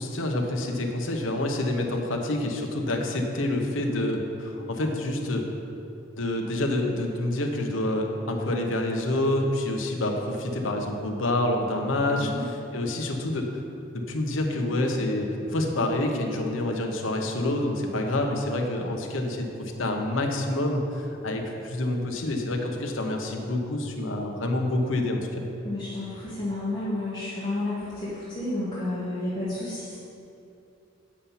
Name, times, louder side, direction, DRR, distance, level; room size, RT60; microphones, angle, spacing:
voice 1, 0.0-5.5 6.2-13.5 13.9-25.4, left 1 dB, 75° left, 2 dB, 1.0 m, -27 dB
voice 2, 12.1-12.4 25.6-30.0, left 2 dB, 20° left, -11 dB, 1.5 m, -31 dB
8.6 x 5.6 x 5.7 m, 2.7 s
head